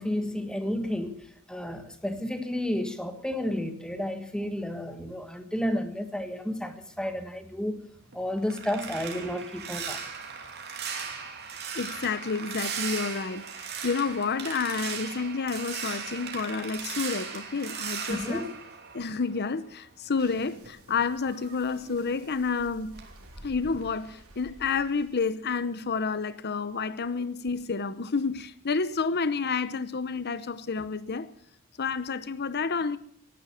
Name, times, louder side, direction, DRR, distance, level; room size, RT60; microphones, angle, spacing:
voice 1, 0.0-7.8 8.1-10.0 18.1-18.5, left 1 dB, 5° left, 1.5 m, -31 dB
sound 1, 8.0-19.6 19.9-22.6 22.9-23.3 23.6-23.9, right 6 dB, 50° right, 2.9 m, -38 dB
voice 2, 11.7-18.5 18.9-22.9 23.4-31.3 31.8-33.0, left 4 dB, 45° left, 0.8 m, -30 dB
sound 2, 20.2-25.3, right 1 dB, 80° right, 3.4 m, -52 dB
17.5 x 11.0 x 7.1 m
head